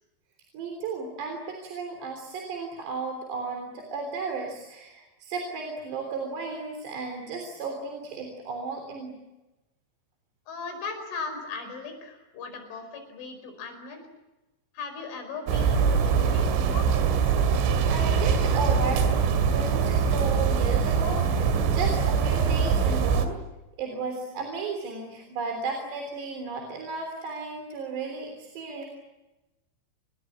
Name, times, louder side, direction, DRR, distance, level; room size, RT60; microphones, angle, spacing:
voice 1, 0.5-9.2 17.9-23.4 23.8-28.8, right 4 dB, 60° right, 4 dB, 5.5 m, -34 dB
voice 2, 10.5-14.0 14.7-16.9, left 4 dB, 75° left, 6 dB, 7.6 m, -38 dB
sound 1, 15.5-23.3, right 6 dB, 90° right, 4.9 m, -23 dB
29.0 x 21.0 x 8.6 m, 1.0 s
omnidirectional pair, 5.6 m